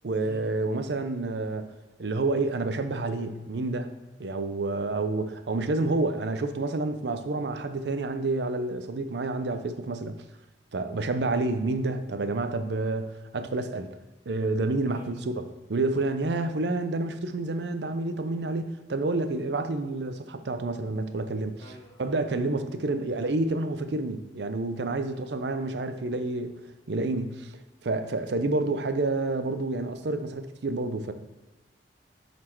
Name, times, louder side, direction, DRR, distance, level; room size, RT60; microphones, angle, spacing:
voice 1, 0.0-1.7 2.0-3.9 4.2-10.2 10.7-13.9 14.3-21.7 22.0-26.5 26.9-27.5 27.8-31.1, right 2 dB, 75° right, 9 dB, 0.6 m, -29 dB
voice 2, 21.6-22.1 25.0-25.3, equal, 25° left, -4 dB, 1.7 m, -48 dB
7.6 x 4.2 x 4.4 m, 1.1 s
head